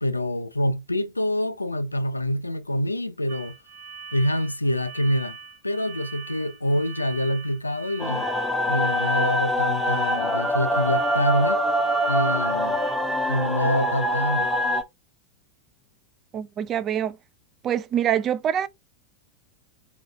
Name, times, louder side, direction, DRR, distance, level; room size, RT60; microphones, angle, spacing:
voice 1, 0.0-3.6 4.1-5.4 5.6-8.3 8.7-11.6 12.1-12.8 13.3-14.5, left 1 dB, 85° left, 0.4 m, -26 dB
sound 1, 3.3-13.0, right 6 dB, 45° right, 1.1 m, -42 dB
sound 2, 8.0-14.8, equal, 5° left, 0.7 m, -24 dB
voice 2, 16.3-17.2 17.6-18.7, right 10 dB, 30° right, 0.4 m, -25 dB
3.8 x 2.5 x 3.4 m
figure-of-eight pair, 90°, 0 cm